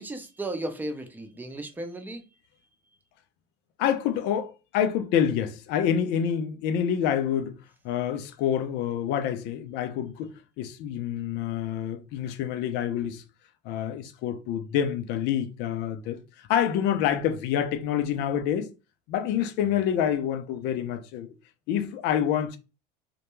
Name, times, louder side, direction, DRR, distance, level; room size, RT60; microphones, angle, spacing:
voice 1, 0.0-2.2, right 1 dB, 10° right, 0.6 m, -35 dB
voice 2, 3.8-7.6 7.8-13.2 13.6-18.7 19.1-21.3 21.7-22.6, left 9 dB, 60° left, 0.5 m, -27 dB
2.2 x 2.2 x 2.9 m
hypercardioid pair, 90°, 20 cm